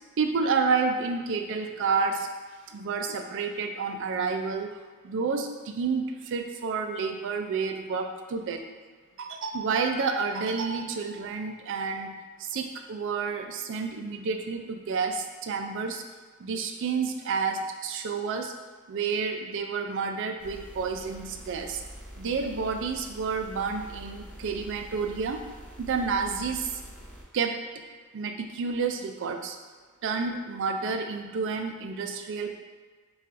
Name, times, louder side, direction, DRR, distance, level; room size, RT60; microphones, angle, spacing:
voice 1, 0.2-2.3 2.7-4.8 5.0-8.6 9.2-12.1 12.4-16.0 16.4-18.5 18.9-21.8 22.2-25.4 25.8-26.8 27.3-27.8 28.1-29.6 30.0-32.6, right 5 dB, 60° right, 5 dB, 0.4 m, -30 dB
sound 1, 20.4-27.2, equal, 5° left, 0.7 m, -46 dB
5.4 x 2.4 x 2.6 m, 1.5 s
head